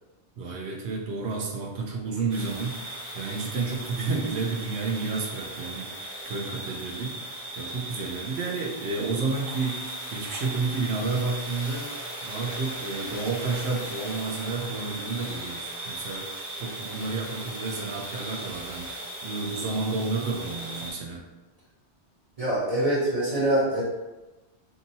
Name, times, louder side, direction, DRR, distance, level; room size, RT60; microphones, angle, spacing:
voice 1, 0.4-11.9 12.2-21.2, right 4 dB, 75° right, 0 dB, 0.9 m, -31 dB
sound 1, 2.3-20.9, right 1 dB, 55° right, 1.2 m, -37 dB
voice 2, 22.4-23.8, right 1 dB, 35° right, -9 dB, 0.8 m, -24 dB
2.8 x 2.6 x 2.6 m, 1.1 s
omnidirectional pair, 1.1 m